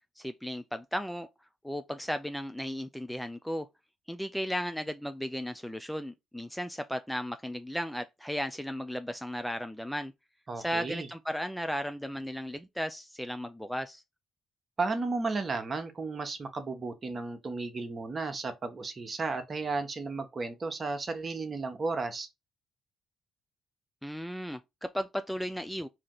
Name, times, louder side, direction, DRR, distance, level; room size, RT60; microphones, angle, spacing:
voice 1, 0.2-1.3 1.6-3.7 4.1-10.1 10.6-14.0 24.0-25.9, equal, 5° left, 0.4 m, -35 dB
voice 2, 10.5-11.1 14.8-22.3, right 3 dB, 35° right, 1.1 m, -34 dB
4.8 x 2.9 x 3.8 m
figure-of-eight pair, 45°, 0 cm